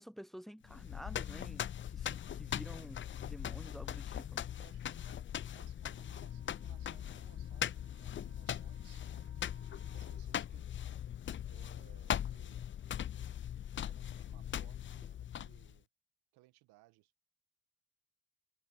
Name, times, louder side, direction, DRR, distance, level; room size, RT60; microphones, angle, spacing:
voice 1, 0.0-4.5, equal, ahead, 1.0 m, -50 dB
sound 1, 0.7-15.8, left 10 dB, 30° left, 0.5 m, -40 dB
voice 2, 4.6-9.0 9.9-10.7 10.9-11.1 11.5-12.7 13.7-15.9 16.3-17.1, right 19 dB, 75° right, 1.9 m, -65 dB
Wind instrument woodwind instrument, 5.9-10.3, right 7 dB, 40° right, 5.7 m, -66 dB
hypercardioid pair, 55°, 38 cm